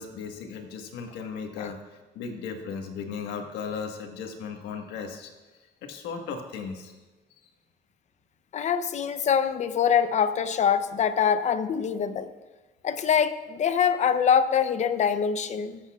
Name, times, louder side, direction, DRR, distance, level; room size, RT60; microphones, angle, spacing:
voice 1, 0.0-5.3 5.8-7.0 7.4-7.5, left 5 dB, 85° left, 3 dB, 1.5 m, -36 dB
voice 2, 8.5-12.3 12.8-15.8, left 7 dB, 45° left, 11 dB, 0.7 m, -24 dB
22.0 x 8.2 x 2.4 m, 1.2 s
cardioid pair, 110°, 17 cm